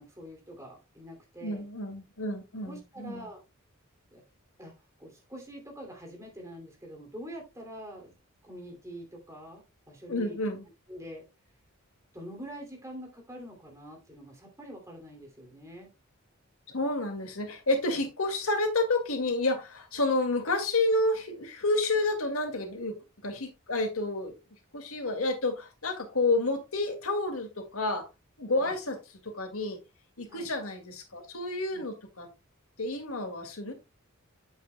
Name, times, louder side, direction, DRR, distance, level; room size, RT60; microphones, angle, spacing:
voice 1, 0.0-1.6 2.6-3.4 4.1-4.2 4.6-4.7 5.0-8.2 8.4-10.4 10.9-11.3 12.1-15.9 17.9-18.0 28.6-28.8 30.3-30.5 31.7-31.9, equal, 15° right, 2.6 m, -45 dB
voice 2, 1.4-3.3 10.1-10.7 16.7-23.0 23.2-24.4 24.7-28.1 28.4-29.0 29.2-29.8 30.2-32.3 32.8-33.7, left 2 dB, 75° left, 2.0 m, -30 dB
8.6 x 8.3 x 2.2 m
head